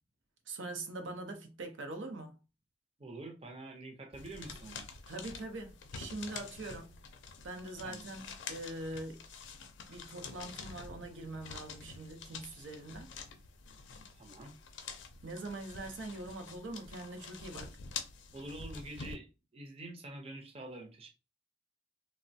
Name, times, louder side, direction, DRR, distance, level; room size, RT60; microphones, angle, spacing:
voice 1, 0.5-2.4 5.1-6.9 7.4-9.2 9.9-13.1 15.2-17.7, right 2 dB, 90° right, 0.6 m, -43 dB
voice 2, 3.0-4.8 7.8-8.0 14.2-14.5 18.3-19.3 19.5-21.1, right 2 dB, 30° right, 0.6 m, -46 dB
sound 1, 4.1-19.1, left 5 dB, 80° left, 0.5 m, -47 dB
3.1 x 2.0 x 2.6 m
head